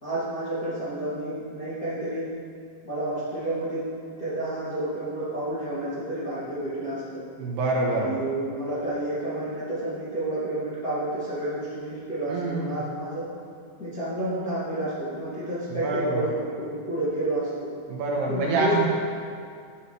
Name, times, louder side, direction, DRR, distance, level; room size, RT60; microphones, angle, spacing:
voice 1, 0.0-2.3 2.8-3.8 4.2-7.2 7.9-13.2 13.8-16.3 16.6-17.7 18.3-18.8, right 1 dB, 30° left, -13 dB, 1.6 m, -30 dB
voice 2, 7.4-8.1 12.3-12.8 15.7-16.2 17.9-18.9, right 2 dB, 75° right, -2 dB, 2.8 m, -26 dB
11.0 x 8.0 x 3.2 m, 2.2 s
omnidirectional pair, 5.1 m